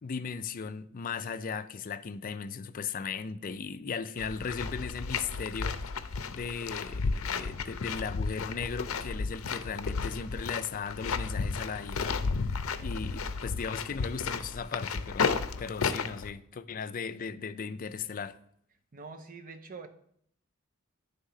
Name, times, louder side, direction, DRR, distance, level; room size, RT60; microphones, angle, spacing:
voice 1, 0.0-6.0 6.3-15.3 15.6-18.4, left 5 dB, 40° left, 0.4 m, -37 dB
sound 1, 4.2-16.3, left 5 dB, 85° left, 0.6 m, -33 dB
voice 2, 18.9-19.9, right 4 dB, 45° right, 0.8 m, -44 dB
10.0 x 3.6 x 5.6 m
head